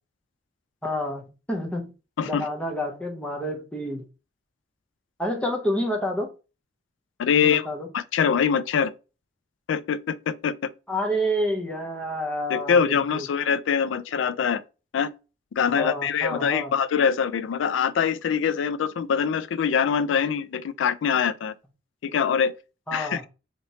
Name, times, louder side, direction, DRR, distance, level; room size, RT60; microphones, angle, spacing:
voice 1, 0.8-1.9 2.2-4.0 5.2-6.3 7.3-7.9 10.9-13.2 15.7-16.7 22.9-23.3, equal, 5° left, 0.6 m, -29 dB
voice 2, 7.2-7.7 7.9-8.9 9.7-10.7 12.5-14.6 14.9-15.1 15.6-21.5 22.0-22.5 22.9-23.2, left 7 dB, 90° left, 0.3 m, -24 dB
3.3 x 2.9 x 2.7 m
head